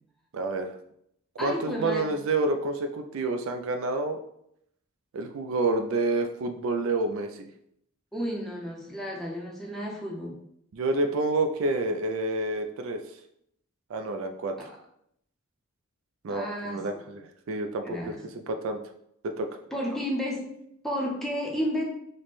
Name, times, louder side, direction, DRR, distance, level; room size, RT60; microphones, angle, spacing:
voice 1, 0.3-0.7 1.4-4.2 5.1-7.5 10.7-13.0 13.9-14.6 16.2-18.0 18.3-18.8 19.4-19.5, right 2 dB, 65° right, 6 dB, 0.3 m, -28 dB
voice 2, 1.4-2.1 8.1-10.4 14.6-14.8 16.3-16.9 17.8-18.2 19.7-20.6 20.8-21.8, equal, ahead, -3 dB, 0.6 m, -32 dB
3.1 x 2.1 x 4.1 m, 0.72 s
head